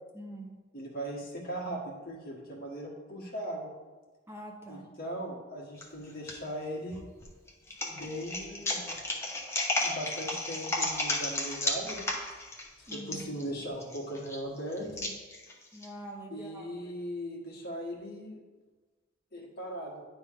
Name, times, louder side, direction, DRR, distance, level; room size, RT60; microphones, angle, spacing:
voice 1, 0.1-0.5 4.3-4.9 12.9-13.3 15.7-16.7, right 1 dB, 10° right, 0 dB, 0.7 m, -44 dB
voice 2, 0.7-3.7 4.7-7.0 7.9-9.0 9.8-12.1 12.8-15.1 16.3-18.4 19.3-20.0, equal, 50° left, -2 dB, 1.5 m, -39 dB
sound 1, 5.8-6.3 6.9-15.9, left 2 dB, 15° left, 0.9 m, -33 dB
10.0 x 3.4 x 4.6 m, 1.3 s
head